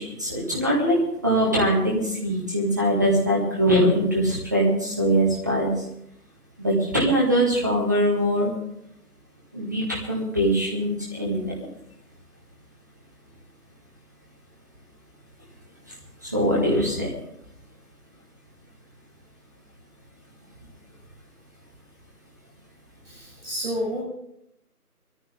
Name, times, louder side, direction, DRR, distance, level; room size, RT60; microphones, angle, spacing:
voice 1, 0.0-5.8 6.6-8.5 9.5-11.7 16.2-17.1, equal, 10° right, -3 dB, 1.5 m, -22 dB
voice 2, 23.0-24.0, equal, 40° right, -5 dB, 6.1 m, -30 dB
20.0 x 14.0 x 3.6 m, 0.77 s
figure-of-eight pair, 165°, 46 cm